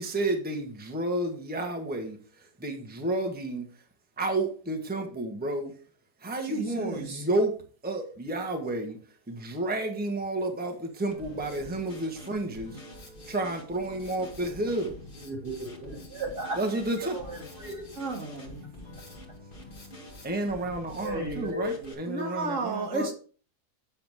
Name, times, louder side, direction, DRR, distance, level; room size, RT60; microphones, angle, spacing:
voice 1, 0.0-2.2 2.6-3.6 4.2-5.7 6.2-7.6 7.8-9.0 9.3-12.8 13.3-15.0 16.5-17.2 20.2-23.1, right 2 dB, 5° right, 1.2 m, -31 dB
voice 2, 6.5-7.3 18.0-18.6 22.1-23.1, right 3 dB, 50° right, 2.1 m, -33 dB
Drum kit, 11.1-21.9, left 1 dB, 35° left, 2.2 m, -46 dB
voice 3, 15.2-17.9 21.0-22.0, right 1 dB, 80° right, 3.3 m, -36 dB
8.7 x 7.0 x 3.5 m
omnidirectional pair, 1.7 m